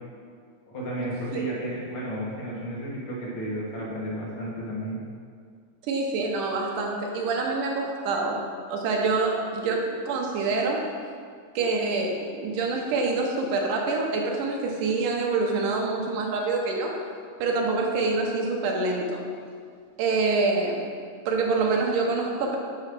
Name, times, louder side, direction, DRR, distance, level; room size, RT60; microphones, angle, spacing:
voice 1, 0.7-5.0, right 1 dB, 50° left, -5 dB, 2.0 m, -32 dB
voice 2, 5.8-8.4 8.7-10.8 11.6-16.9 17.4-19.2 20.0-20.9 21.3-22.6, right 3 dB, 90° right, 0 dB, 2.4 m, -26 dB
8.3 x 2.9 x 5.9 m, 2.1 s
omnidirectional pair, 3.5 m